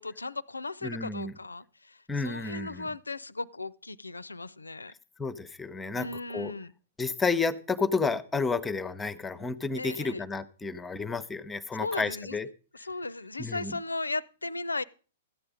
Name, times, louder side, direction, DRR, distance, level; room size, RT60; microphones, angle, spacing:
voice 1, 0.0-4.9 6.0-6.7 9.8-10.2 11.8-12.4 12.7-14.8, left 3 dB, 85° left, 0.5 m, -36 dB
voice 2, 0.8-1.3 2.1-2.9 5.2-6.1 6.3-6.5 7.0-12.5 13.4-13.7, left 4 dB, 10° left, 0.7 m, -31 dB
13.5 x 8.8 x 4.9 m
figure-of-eight pair, 110°, 0 cm